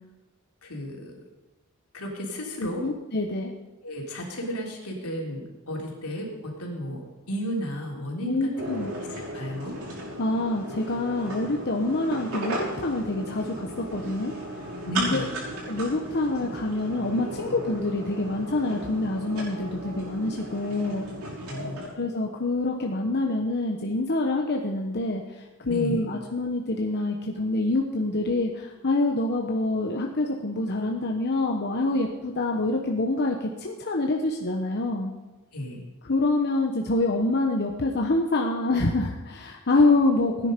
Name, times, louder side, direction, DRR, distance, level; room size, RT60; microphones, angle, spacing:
voice 1, 0.6-1.2 1.9-2.9 3.8-8.5 9.2-9.8 14.8-15.4 21.4-21.8 25.7-26.0 35.5-35.8, equal, 80° left, -1 dB, 3.5 m, -33 dB
voice 2, 2.6-3.5 8.2-8.9 10.2-14.3 15.0-15.3 15.7-21.1 22.0-35.1 36.0-40.5, left 2 dB, 50° left, 1 dB, 1.1 m, -26 dB
sound 1, 8.6-21.9, right 1 dB, 70° right, 6.0 m, -36 dB
17.0 x 10.0 x 5.3 m, 1.2 s
head